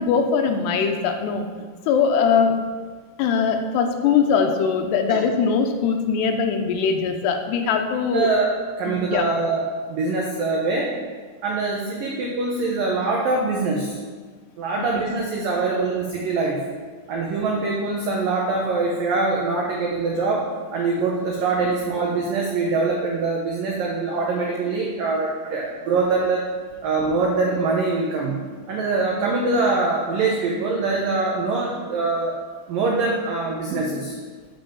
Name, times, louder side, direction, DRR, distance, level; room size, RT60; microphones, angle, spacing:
voice 1, 0.0-1.5 1.9-2.6 3.2-8.4 8.9-9.2 14.8-15.0 15.8-15.9, left 6 dB, 75° left, 4 dB, 2.8 m, -21 dB
voice 2, 8.1-10.9 11.4-14.0 14.6-16.6 17.1-26.5 26.8-28.4 28.7-32.4 32.7-34.2, right 3 dB, 70° right, -1 dB, 2.3 m, -23 dB
9.1 x 8.2 x 7.1 m, 1.5 s
omnidirectional pair, 5.4 m